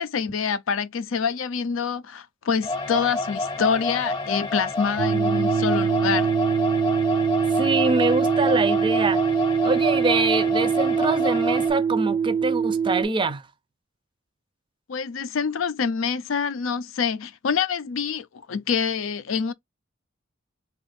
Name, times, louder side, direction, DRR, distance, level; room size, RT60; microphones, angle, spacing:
voice 1, 0.0-6.3 14.9-19.5, left 6 dB, 90° left, 0.5 m, -26 dB
sound 1, 2.6-11.7, left 2 dB, 25° left, 0.8 m, -29 dB
sound 2, 5.0-13.0, right 6 dB, 85° right, 0.5 m, -23 dB
voice 2, 7.5-9.3 9.6-13.4, right 3 dB, 25° right, 0.4 m, -24 dB
2.7 x 2.4 x 4.2 m
head